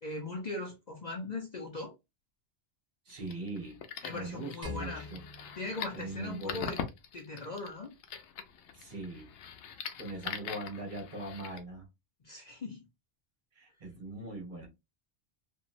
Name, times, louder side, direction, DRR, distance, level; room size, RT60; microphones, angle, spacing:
voice 1, 0.0-1.9 4.0-5.0 5.6-6.8 7.1-7.9 12.2-12.9, left 2 dB, 45° left, 0.6 m, -39 dB
voice 2, 3.0-3.8 4.1-5.2 5.9-6.8 8.7-9.3 10.0-11.9 13.5-14.7, right 2 dB, 45° right, 1.2 m, -41 dB
sound 1, 3.1-11.6, left 7 dB, 90° left, 0.9 m, -43 dB
sound 2, 4.6-7.0, left 4 dB, 15° left, 1.1 m, -45 dB
2.9 x 2.6 x 2.4 m
omnidirectional pair, 1.1 m